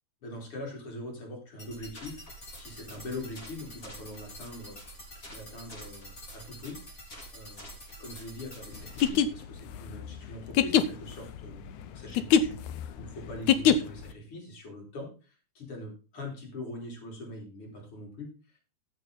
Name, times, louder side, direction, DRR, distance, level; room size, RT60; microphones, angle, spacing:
voice 1, 0.2-4.8 5.3-7.1 7.3-7.7 8.0-18.6, left 1 dB, 45° left, 0 dB, 4.2 m, -42 dB
sound 1, 1.6-9.1, equal, 25° left, 3.4 m, -46 dB
sound 2, 8.9-14.1, left 9 dB, 75° left, 2.1 m, -24 dB
14.0 x 6.7 x 3.9 m, 0.34 s
omnidirectional pair, 3.6 m